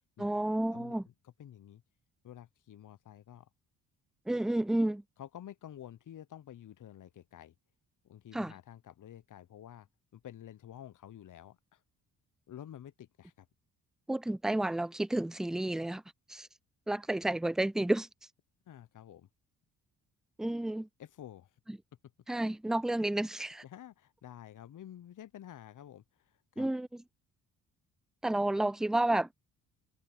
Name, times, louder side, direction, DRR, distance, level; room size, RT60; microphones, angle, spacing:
voice 1, 0.2-1.1 4.3-5.0 8.3-8.5 14.1-16.0 16.3-16.5 16.9-18.1 20.4-20.9 21.7-21.8 22.3-23.6 26.6-27.0 28.2-29.3, right 1 dB, ahead, 0.4 m, -31 dB
voice 2, 1.4-1.8 2.2-3.5 5.2-7.5 8.0-9.9 10.1-11.8 12.5-13.5 18.7-19.3 21.0-21.5 23.6-26.7, left 11 dB, 50° left, 1.1 m, -50 dB
hypercardioid pair, 45°, 41 cm